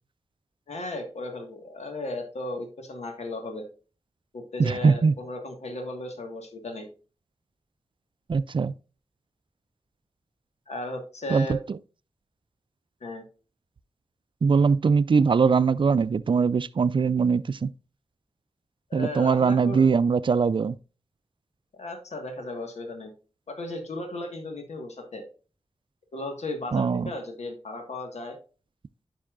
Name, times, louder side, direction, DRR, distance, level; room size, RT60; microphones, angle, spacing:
voice 1, 0.7-3.6 4.3-6.9 10.7-11.6 13.0-13.2 18.9-19.9 21.7-23.1 23.5-25.3 26.1-28.4, left 2 dB, 80° left, 1.6 m, -35 dB
voice 2, 4.6-5.1 8.3-8.7 11.3-11.5 14.4-17.7 18.9-20.8 26.7-27.1, right 5 dB, 50° right, 0.4 m, -21 dB
10.0 x 5.4 x 2.5 m
cardioid pair, 40°, 11 cm